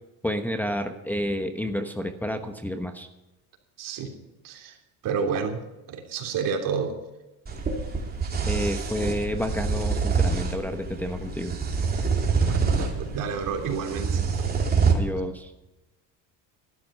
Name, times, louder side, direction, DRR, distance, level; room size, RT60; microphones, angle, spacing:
voice 1, 0.2-3.1 8.5-11.6 14.9-15.5, equal, 5° left, 4 dB, 1.0 m, -30 dB
voice 2, 3.8-4.1 4.4-4.7 5.0-5.6 5.9-6.9 12.5-14.2, right 6 dB, 60° right, 3 dB, 3.3 m, -29 dB
sound 1, 7.5-14.9, right 5 dB, 25° right, 3.0 m, -26 dB
13.0 x 12.0 x 5.6 m, 1.0 s
cardioid pair, 120°, 36 cm